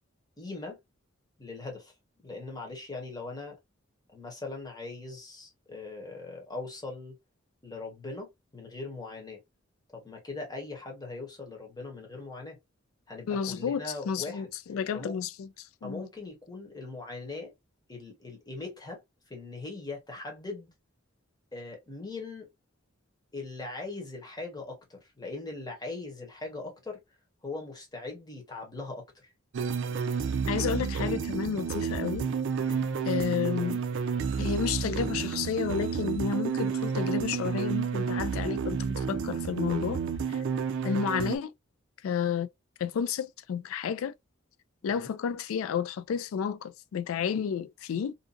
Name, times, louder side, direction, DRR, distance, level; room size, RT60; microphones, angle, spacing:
voice 1, 0.4-0.8 1.4-1.9 2.2-3.6 4.1-7.2 7.6-9.4 9.9-12.6 13.1-14.5 14.9-15.2 15.8-17.5 17.9-19.0 19.3-20.7 21.5-22.5 23.3-27.0 27.4-29.3 32.6-32.9 44.8-45.1, left 3 dB, 20° left, 1.1 m, -40 dB
voice 2, 13.3-15.5 15.8-16.1 30.5-32.3 33.0-33.8 34.4-40.0 40.3-40.4 40.8-41.5 42.0-42.5 42.8-44.1 44.8-48.1, left 7 dB, 85° left, 0.3 m, -31 dB
sound 1, 29.5-41.4, right 6 dB, 65° right, 0.4 m, -30 dB
2.7 x 2.5 x 2.4 m
head